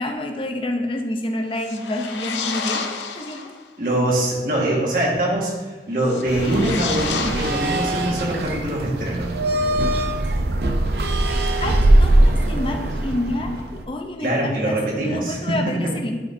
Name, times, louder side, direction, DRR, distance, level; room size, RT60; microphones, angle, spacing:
voice 1, 0.0-3.4 11.6-16.2, left 1 dB, 30° left, 4 dB, 0.6 m, -28 dB
sound 1, 1.5-3.6 6.0-8.3, left 5 dB, 85° left, 0.6 m, -30 dB
voice 2, 3.8-5.5 5.9-9.3 14.2-15.9, right 1 dB, 50° right, -3 dB, 1.6 m, -23 dB
sound 2, 6.3-13.8, right 1 dB, 70° right, 0.6 m, -21 dB
11.0 x 4.6 x 2.7 m, 1.3 s
head